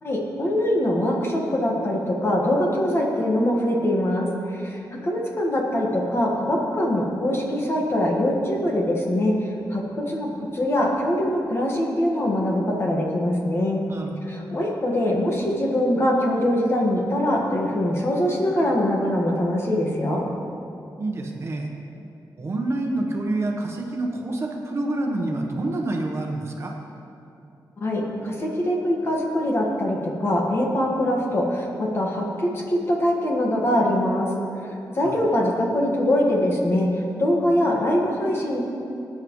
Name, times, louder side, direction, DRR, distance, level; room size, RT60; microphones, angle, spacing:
voice 1, 0.0-13.8 14.2-20.2 27.8-34.3 34.9-36.9 37.2-38.6, left 1 dB, 35° left, -1 dB, 1.6 m, -23 dB
voice 2, 13.9-14.2 21.0-21.7 22.4-26.7 35.0-35.2, right 2 dB, 35° right, 1 dB, 1.1 m, -27 dB
19.5 x 9.6 x 3.2 m, 2.8 s
wide cardioid pair, 170°, 8 cm